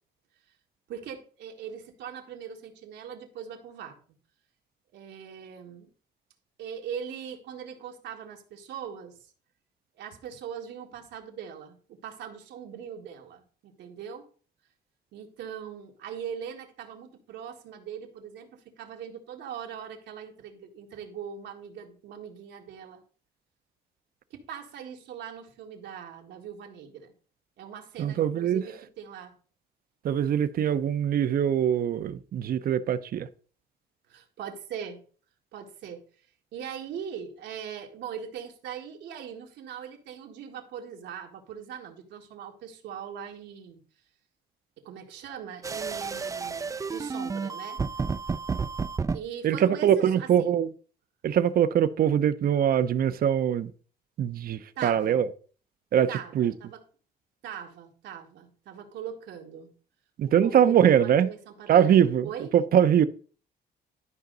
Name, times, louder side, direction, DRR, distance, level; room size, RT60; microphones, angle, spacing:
voice 1, 0.9-4.0 4.9-5.9 6.6-9.2 10.0-14.3 15.1-23.0 24.3-27.1 27.6-29.4 34.1-35.0 35.5-36.0 36.5-43.8 44.8-47.8 49.1-50.6 54.8-55.3 56.1-56.8 57.4-59.7 60.3-62.5, right 8 dB, 90° right, 1.8 m, -41 dB
voice 2, 28.0-28.6 30.0-33.3 49.4-50.7 51.2-53.7 54.2-55.3 55.9-56.1 56.3-56.5 60.2-61.3 61.7-63.0, right 9 dB, 55° right, 0.7 m, -22 dB
sound 1, 45.6-49.2, right 5 dB, 20° right, 0.4 m, -31 dB
12.0 x 5.1 x 3.9 m
cardioid pair, 120°, 18 cm